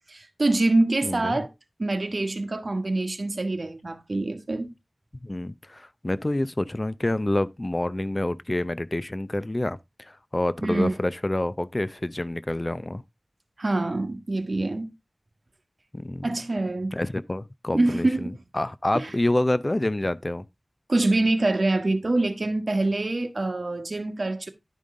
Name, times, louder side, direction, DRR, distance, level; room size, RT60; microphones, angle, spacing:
voice 1, 0.1-1.5 1.8-4.7 10.6-10.9 13.6-14.9 16.2-16.9 17.7-18.4 18.9-19.1 20.9-24.5, right 2 dB, 65° right, 1.3 m, -25 dB
voice 2, 1.0-1.5 5.2-13.0 15.9-16.3 16.9-20.4, left 1 dB, 35° left, 0.5 m, -27 dB
11.5 x 5.3 x 3.7 m
wide cardioid pair, 65°, 0 cm